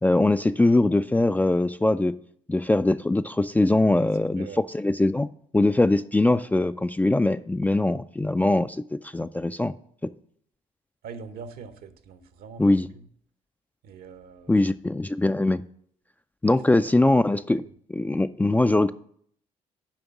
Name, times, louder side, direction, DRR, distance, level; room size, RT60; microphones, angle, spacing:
voice 1, 0.0-2.2 2.5-5.3 5.5-9.7 12.6-12.9 14.5-15.7 16.4-17.6 17.9-18.9, left 2 dB, 10° left, 11 dB, 0.3 m, -22 dB
voice 2, 11.0-12.8 13.8-14.7 16.4-16.6 16.8-16.9, right 5 dB, 65° right, 10 dB, 1.0 m, -42 dB
7.3 x 5.2 x 7.0 m, 0.64 s
hypercardioid pair, 55°, 17 cm